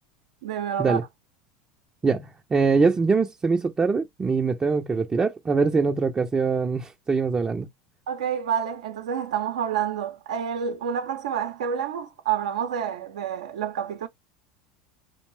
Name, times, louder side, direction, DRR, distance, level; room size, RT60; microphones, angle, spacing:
voice 1, 0.4-1.0 8.1-14.1, right 8 dB, 80° right, 0.6 m, -28 dB
voice 2, 2.0-7.7, right 4 dB, 20° right, 0.5 m, -23 dB
2.6 x 2.0 x 3.1 m
hypercardioid pair, 95°, 4 cm